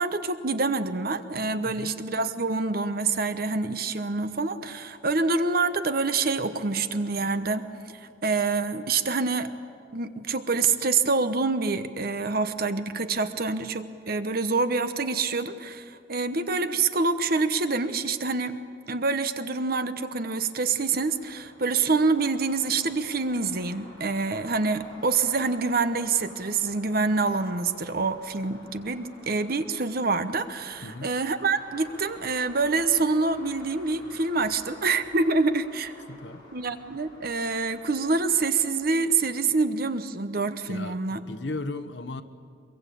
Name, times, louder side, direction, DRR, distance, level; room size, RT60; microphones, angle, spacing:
voice 1, 0.0-7.6 8.2-9.5 9.9-18.6 18.9-35.9 36.5-41.2, right 4 dB, 55° right, 11 dB, 1.0 m, -26 dB
sound 1, 20.7-39.6, left 1 dB, 25° left, 7.5 m, -51 dB
voice 2, 30.8-31.1 36.1-36.4 40.7-42.2, left 2 dB, 65° left, 8 dB, 1.2 m, -36 dB
23.5 x 23.0 x 8.5 m, 2.4 s
head